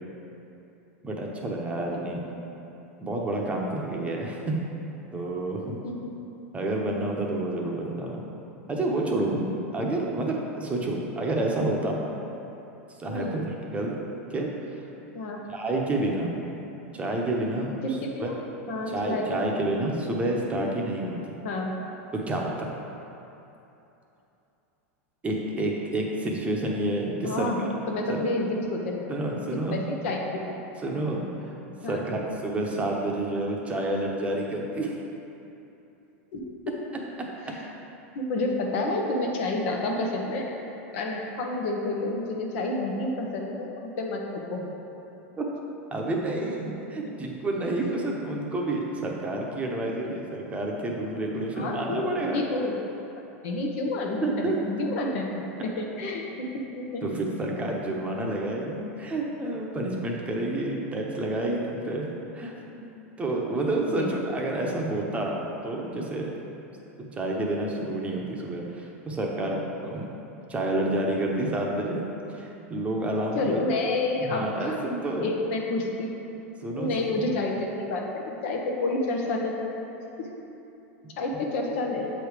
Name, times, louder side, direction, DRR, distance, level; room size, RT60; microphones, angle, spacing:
voice 1, 1.0-2.2 3.0-4.6 5.1-5.7 6.5-8.2 8.7-12.0 13.0-13.9 14.3-14.8 15.5-16.3 16.9-18.3 18.9-21.4 22.1-22.7 25.2-27.7 28.1-28.2 29.1-29.8 30.8-31.5 31.8-35.0 45.4-45.5 45.9-52.4 54.2-54.6 57.0-62.1 62.3-62.9 63.2-66.3 67.2-70.1 70.5-72.0 72.3-73.6 74.2-75.3 76.6-77.4, right 2 dB, 15° right, -1 dB, 0.8 m, -29 dB
voice 2, 13.1-13.4 15.1-15.4 17.8-18.3 18.7-19.4 20.4-20.7 21.4-21.7 27.2-27.6 27.9-29.0 29.7-30.2 31.8-32.1 36.3-36.4 38.1-40.4 40.9-44.6 46.8-46.9 51.3-52.9 53.4-55.4 55.8-57.0 63.9-64.2 73.3-74.8 75.2-76.2 76.8-79.8 80.2-80.3 81.2-82.1, left 2 dB, 70° left, 0 dB, 1.0 m, -29 dB
7.7 x 3.3 x 4.9 m, 2.9 s
supercardioid pair, 120°, 7 cm